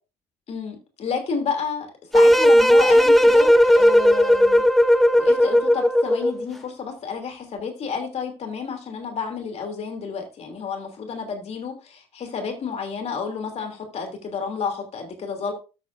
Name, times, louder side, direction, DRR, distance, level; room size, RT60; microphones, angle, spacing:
voice 1, 0.5-1.9 2.1-4.6 5.2-15.5, left 5 dB, 45° left, 4 dB, 2.9 m, -30 dB
sound 1, 2.1-6.5, equal, ahead, 0.8 m, -15 dB
13.0 x 6.6 x 2.6 m, 0.31 s
hypercardioid pair, 65°, 15 cm